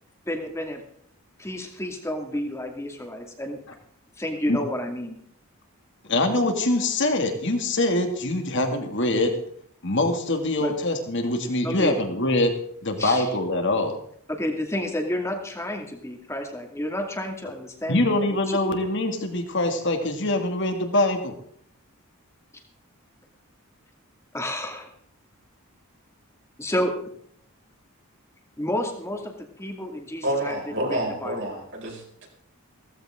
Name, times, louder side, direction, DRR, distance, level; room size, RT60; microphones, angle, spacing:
voice 1, 0.3-0.8 1.4-3.6 4.2-5.2 10.6-10.8 11.6-12.0 13.0-13.3 14.3-18.7 24.3-24.9 26.6-27.0 28.6-31.5, left 1 dB, 10° left, 2 dB, 2.4 m, -30 dB
voice 2, 6.1-9.3 9.8-12.5 12.8-13.9 17.9-21.3, left 2 dB, 55° left, 5 dB, 2.6 m, -24 dB
voice 3, 30.2-32.3, right 1 dB, 55° right, -2 dB, 5.5 m, -29 dB
16.5 x 15.0 x 3.8 m, 0.65 s
head